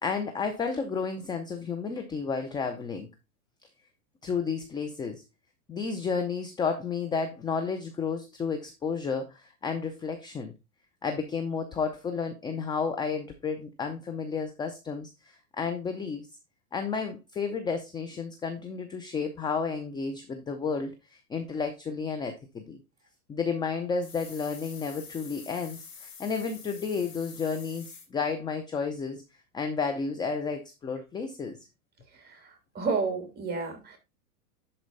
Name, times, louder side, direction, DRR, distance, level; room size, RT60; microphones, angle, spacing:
voice 1, 0.0-3.1 4.2-5.2 5.7-10.5 11.0-16.3 16.7-22.8 23.3-29.2 29.5-31.6, left 5 dB, 10° left, 6 dB, 0.6 m, -32 dB
sound 1, 24.0-28.1, left 6 dB, 30° left, 3.0 m, -47 dB
voice 2, 32.1-34.0, right 4 dB, 20° right, 5 dB, 3.0 m, -31 dB
11.0 x 4.4 x 4.0 m, 0.26 s
hypercardioid pair, 130°, 44 cm